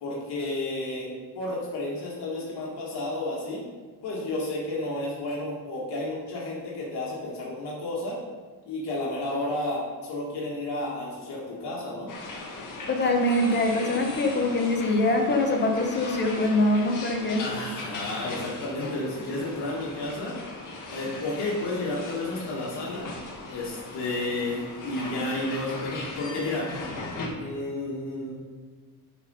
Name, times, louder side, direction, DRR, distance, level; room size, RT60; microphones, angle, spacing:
voice 1, 0.0-3.6 4.0-8.2 8.7-12.1 17.4-20.3 20.9-23.1 23.5-26.7 27.4-28.3, left 2 dB, 70° left, -5 dB, 1.7 m, -31 dB
sound 1, 12.1-27.3, left 2 dB, 50° left, 1.5 m, -39 dB
voice 2, 12.9-17.4, left 1 dB, 25° left, 2 dB, 1.1 m, -23 dB
9.0 x 4.3 x 5.4 m, 1.5 s
cardioid pair, 165°, 41 cm